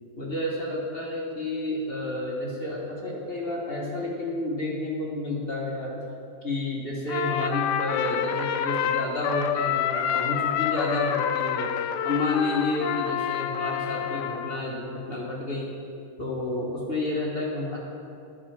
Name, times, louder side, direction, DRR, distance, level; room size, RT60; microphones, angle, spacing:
voice 1, 0.2-6.0 6.4-15.7 16.2-17.8, left 2 dB, 35° left, -3 dB, 1.2 m, -30 dB
Trumpet, 7.1-14.6, left 9 dB, 75° left, 1.0 m, -28 dB
11.0 x 5.5 x 7.0 m, 2.5 s
omnidirectional pair, 2.1 m